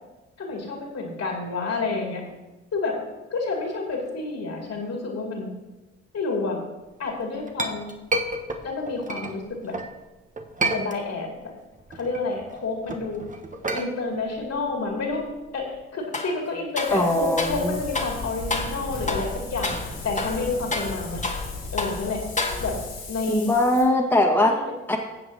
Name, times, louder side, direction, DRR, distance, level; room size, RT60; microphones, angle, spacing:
voice 1, 0.4-2.2 2.7-3.0 3.3-5.5 6.1-6.6 7.0-7.9 8.6-9.7 10.6-11.3 11.9-13.2 13.7-15.2 15.5-15.7 15.9-19.8 20.0-21.2 21.7-22.2 22.6-22.8 23.1-23.5 24.4-24.7, left 3 dB, 50° left, -1 dB, 2.5 m, -29 dB
Chink clink, 7.1-9.9 10.4-11.4 11.7-15.8, right 2 dB, 25° right, 1.2 m, -31 dB
sound 1, 16.1-16.4 16.8-17.6 17.9-18.2 18.5-18.8 19.1-19.3 19.6-19.9 20.2-21.5 21.8-22.0 22.4-22.9, left 3 dB, 20° left, 1.7 m, -29 dB
Wind, 16.8-23.8, left 3 dB, 80° left, 2.6 m, -36 dB
voice 2, 16.9-17.8 23.3-24.5 24.9-25.0, left 1 dB, 5° left, -2 dB, 1.7 m, -21 dB
15.0 x 7.7 x 2.8 m, 1.1 s
hypercardioid pair, 45°, 33 cm